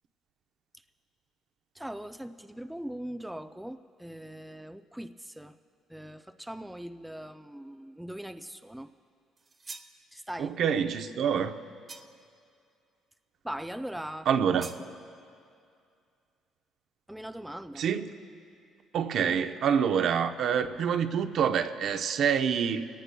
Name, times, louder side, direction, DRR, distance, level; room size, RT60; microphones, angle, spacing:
voice 1, 1.7-5.6 5.9-8.9 10.1-10.6 13.4-14.6 17.1-17.8, right 1 dB, 5° right, 0.4 m, -40 dB
sound 1, 9.4-10.0 11.9-12.3 14.6-14.9, right 3 dB, 30° right, 0.9 m, -45 dB
voice 2, 10.4-11.6 14.3-14.7 17.8-18.1 18.9-22.9, right 7 dB, 65° right, 0.7 m, -26 dB
25.0 x 18.0 x 2.2 m
cardioid pair, 105°, 0 cm